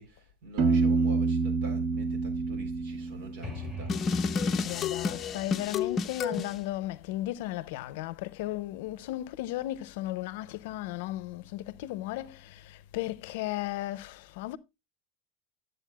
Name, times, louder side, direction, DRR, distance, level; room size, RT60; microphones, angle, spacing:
voice 1, 0.0-4.0, right 2 dB, 70° right, 3.4 m, -46 dB
Piano, 0.6-4.3, right 4 dB, 50° right, 1.5 m, -28 dB
sound 1, 3.4-7.1, left 2 dB, 10° right, 2.7 m, -43 dB
sound 2, 3.9-6.5, left 5 dB, 25° left, 0.6 m, -30 dB
voice 2, 4.6-14.6, left 15 dB, 70° left, 0.5 m, -35 dB
11.0 x 7.9 x 2.3 m
supercardioid pair, 165°, 0 cm